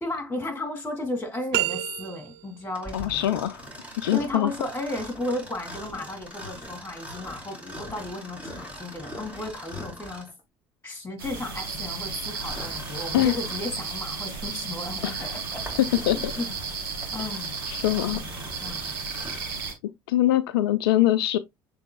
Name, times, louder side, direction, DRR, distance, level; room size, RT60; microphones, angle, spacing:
voice 1, 0.0-3.3 4.1-10.3 10.8-15.6 16.1-16.6 17.1-17.5 17.9-18.8, left 2 dB, 15° left, 2.5 m, -34 dB
sound 1, 1.5-2.6, right 16 dB, 70° right, 0.5 m, -28 dB
Mechanisms, 2.7-10.4 12.2-13.8 14.4-14.5 15.2-19.6, equal, 10° right, 2.6 m, -41 dB
voice 2, 2.9-3.7 4.0-4.5 13.1-13.3 15.0-15.2 16.1-16.3 17.7-18.2 20.1-21.4, left 13 dB, 80° left, 0.4 m, -23 dB
sound 2, 11.2-19.7, right 4 dB, 85° right, 1.2 m, -34 dB
6.8 x 3.3 x 2.3 m
hypercardioid pair, 65°, 12 cm